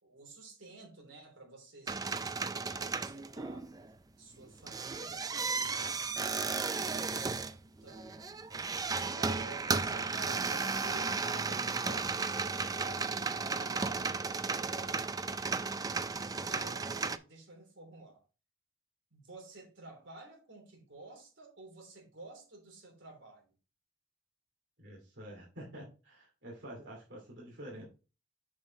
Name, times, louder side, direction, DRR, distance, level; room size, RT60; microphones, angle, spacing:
voice 1, 0.0-3.7 4.2-6.7 7.6-8.4 9.1-15.3 16.4-18.2 19.1-23.5, right 3 dB, 85° right, 3.2 m, -52 dB
sound 1, 1.9-3.9 4.4-17.2, right 4 dB, 20° right, 0.4 m, -34 dB
voice 2, 24.8-27.8, right 1 dB, 65° right, 2.5 m, -48 dB
7.0 x 6.5 x 3.0 m
head